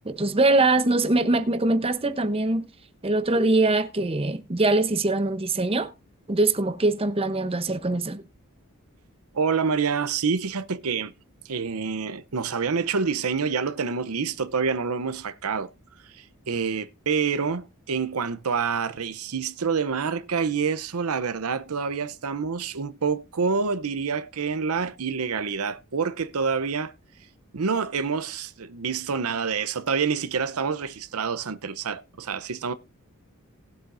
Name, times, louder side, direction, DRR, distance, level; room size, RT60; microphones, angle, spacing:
voice 1, 0.0-2.6 3.0-5.9 6.3-8.2, right 2 dB, 25° right, 0.8 m, -23 dB
voice 2, 9.3-11.1 11.4-15.7 16.0-26.9 27.5-32.7, right 5 dB, 85° right, 0.7 m, -27 dB
19.0 x 7.9 x 2.6 m
head